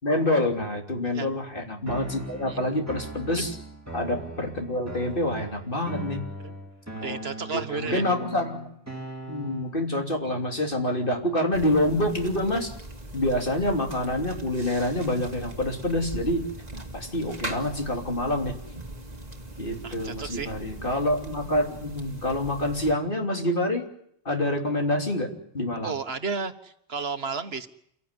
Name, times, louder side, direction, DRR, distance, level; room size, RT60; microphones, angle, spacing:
voice 1, 0.0-3.5 3.9-6.2 7.0-7.2 7.5-8.6 9.3-12.7 13.1-16.4 16.9-18.5 19.6-23.9 24.2-25.9, left 1 dB, 55° left, 2 dB, 3.4 m, -27 dB
sound 1, 1.9-9.9, right 1 dB, 15° right, 2.7 m, -39 dB
voice 2, 7.0-8.0 19.8-20.5 25.8-27.7, right 5 dB, 70° right, 8 dB, 1.6 m, -33 dB
sound 2, 11.5-22.9, right 1 dB, 40° right, 2.2 m, -40 dB
29.5 x 14.5 x 9.8 m, 0.73 s
omnidirectional pair, 1.1 m